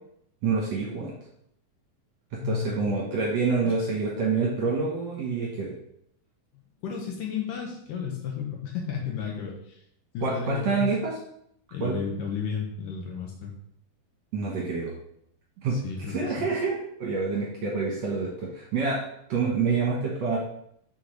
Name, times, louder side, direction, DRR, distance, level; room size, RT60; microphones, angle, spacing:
voice 1, 0.4-1.2 2.3-5.8 10.2-11.2 11.8-12.0 14.3-14.9 15.6-15.8 16.1-19.0 19.3-20.4, right 4 dB, 60° right, -3 dB, 2.1 m, -27 dB
voice 2, 2.4-2.9 3.8-3.9 6.8-9.8 10.1-10.9 11.7-13.5 15.7-16.5, left 6 dB, 70° left, 0 dB, 2.4 m, -33 dB
7.8 x 6.3 x 3.3 m, 0.72 s
omnidirectional pair, 4.4 m